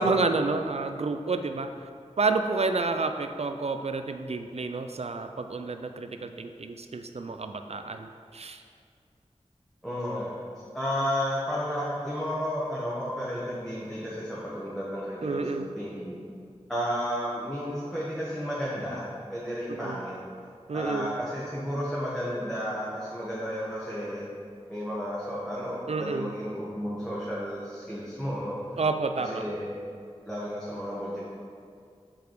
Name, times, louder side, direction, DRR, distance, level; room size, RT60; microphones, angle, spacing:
voice 1, 0.0-1.7 2.2-8.6 15.2-15.7 19.7-20.0 20.7-21.2 25.9-26.3 28.8-29.4, right 3 dB, 65° right, 7 dB, 0.5 m, -29 dB
voice 2, 9.8-15.5 15.7-16.2 16.7-20.1 20.7-24.2 24.7-28.6 29.2-29.7 30.2-31.3, equal, 5° left, -8 dB, 1.4 m, -32 dB
7.1 x 5.0 x 4.7 m, 2.4 s
wide cardioid pair, 65°, 12 cm